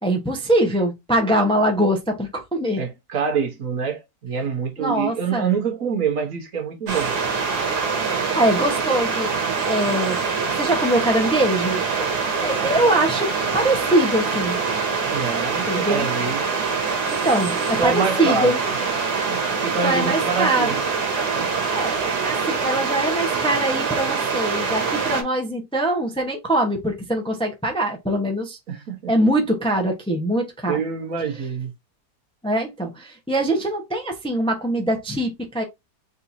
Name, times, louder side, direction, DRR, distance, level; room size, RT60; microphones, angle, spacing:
voice 1, 0.0-2.8 4.8-5.6 7.9-9.3 9.6-10.2 10.6-11.8 12.4-14.6 15.7-16.1 17.1-18.6 19.8-20.8 21.7-28.6 29.1-30.8 32.4-35.6, right 1 dB, 5° left, 0.7 m, -23 dB
voice 2, 2.8-7.1 15.1-16.4 17.8-18.5 19.3-20.8 21.3-21.5 28.7-29.3 30.7-31.7, right 6 dB, 65° right, 1.3 m, -26 dB
sound 1, 6.9-25.2, right 5 dB, 90° right, 1.7 m, -24 dB
4.3 x 3.7 x 2.6 m
omnidirectional pair, 1.6 m